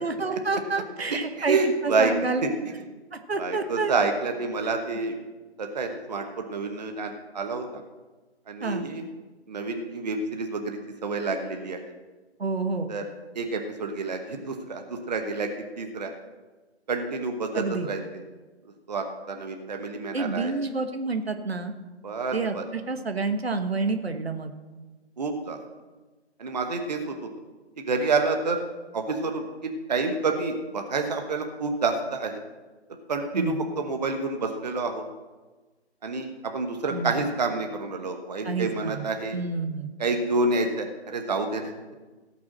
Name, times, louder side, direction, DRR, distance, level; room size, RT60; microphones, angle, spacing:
voice 1, 0.0-1.6 1.8-2.7 3.1-3.9 8.6-8.9 12.4-12.9 17.5-17.9 20.1-21.7 22.3-24.5 33.3-33.6 36.9-37.2 38.4-39.1 39.3-39.9, right 3 dB, 65° right, 7 dB, 1.3 m, -29 dB
voice 2, 1.5-2.1 2.4-2.5 3.4-5.2 5.6-7.8 8.5-9.0 9.5-11.8 12.9-13.0 13.3-15.5 15.8-16.1 16.9-18.2 18.9-20.5 22.0-22.6 25.2-25.6 26.4-27.3 27.8-28.6 28.9-32.4 33.1-35.1 36.0-39.4 40.0-41.7, right 3 dB, 40° right, 4 dB, 1.1 m, -28 dB
17.0 x 6.1 x 6.3 m, 1.2 s
figure-of-eight pair, 145°, 34 cm